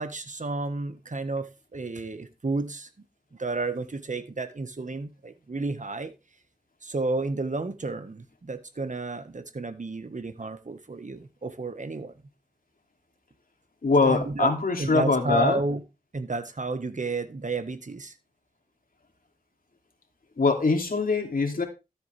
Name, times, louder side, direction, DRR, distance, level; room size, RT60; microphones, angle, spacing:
voice 1, 0.0-2.9 3.4-6.1 6.8-12.1 14.0-14.5 14.8-15.8 16.1-18.1, right 3 dB, 55° right, 1.5 m, -31 dB
voice 2, 13.8-15.6 20.4-21.7, left 4 dB, 70° left, 2.7 m, -23 dB
13.0 x 8.0 x 3.4 m
cardioid pair, 45°, 15 cm